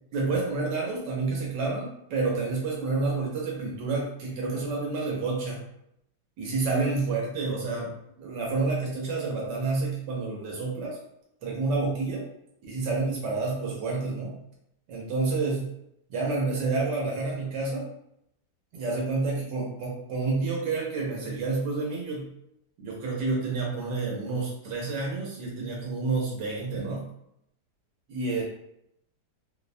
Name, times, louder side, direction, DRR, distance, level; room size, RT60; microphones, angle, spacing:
voice 1, 0.1-5.6 6.4-7.9 8.2-11.0 11.4-12.2 12.6-14.4 14.9-15.7 16.1-17.9 18.7-22.3 22.8-27.0 28.1-28.4, right 3 dB, 85° right, -2 dB, 1.3 m, -29 dB
3.0 x 2.0 x 2.5 m, 0.77 s
omnidirectional pair, 1.8 m